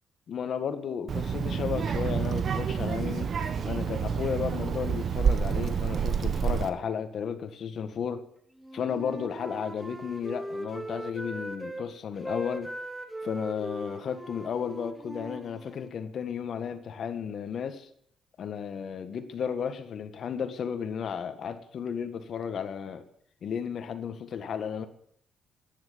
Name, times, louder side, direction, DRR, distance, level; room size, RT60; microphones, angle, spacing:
voice 1, 0.3-3.3 3.6-8.2 8.7-12.7 13.2-17.9 18.4-23.0 23.4-24.9, left 7 dB, 60° left, 9 dB, 1.7 m, -33 dB
Child speech kid speaking, 1.1-6.7, right 7 dB, 55° right, 1.3 m, -28 dB
Wind instrument woodwind instrument, 8.6-11.9 12.2-15.9, equal, 5° right, 1.5 m, -39 dB
10.5 x 10.0 x 8.1 m, 0.67 s
cardioid pair, 90°, 0 cm